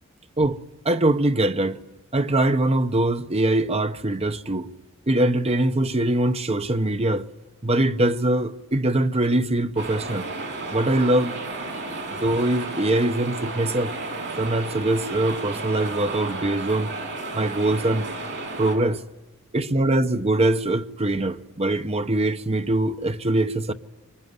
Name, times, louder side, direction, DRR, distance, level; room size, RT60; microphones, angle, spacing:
voice 1, 0.8-1.8 2.1-4.7 5.1-7.2 7.6-10.2 10.7-11.3 12.2-13.9 14.4-16.9 17.3-18.1 18.6-19.0 19.5-23.7, right 1 dB, 30° right, 0.9 m, -22 dB
sound 1, 9.8-18.8, right 3 dB, 55° right, 5.9 m, -33 dB
24.5 x 22.5 x 9.6 m
head